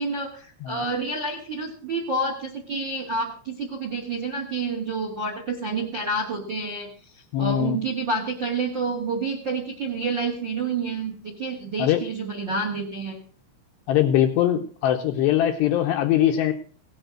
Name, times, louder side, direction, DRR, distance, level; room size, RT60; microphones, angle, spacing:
voice 1, 0.0-6.9 7.1-13.2, right 3 dB, 45° right, 4 dB, 1.5 m, -29 dB
voice 2, 7.3-7.8 11.8-12.0 13.9-16.5, left 11 dB, 75° left, 5 dB, 2.6 m, -21 dB
17.5 x 10.5 x 6.4 m, 0.43 s
omnidirectional pair, 5.8 m